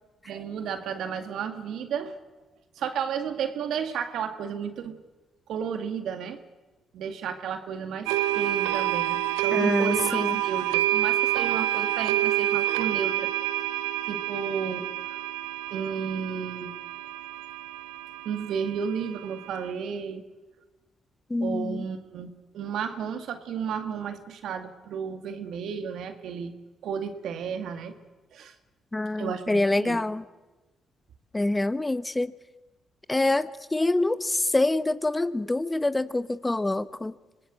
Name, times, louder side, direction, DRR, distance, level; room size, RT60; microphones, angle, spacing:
voice 1, 0.3-2.2 2.8-5.0 5.5-6.4 6.9-13.3 14.1-15.2 15.7-16.7 18.2-20.2 21.4-26.6 26.8-28.0 28.3-28.5 29.2-30.0, right 7 dB, 70° right, 8 dB, 2.1 m, -33 dB
sound 1, 8.1-19.7, right 14 dB, 90° right, 0.8 m, -28 dB
voice 2, 9.5-10.4 21.3-21.9 28.9-30.2 31.3-32.3 33.1-37.1, left 2 dB, 20° left, 14 dB, 1.1 m, -26 dB
25.5 x 19.0 x 7.7 m, 1.2 s
hypercardioid pair, 50°, 0 cm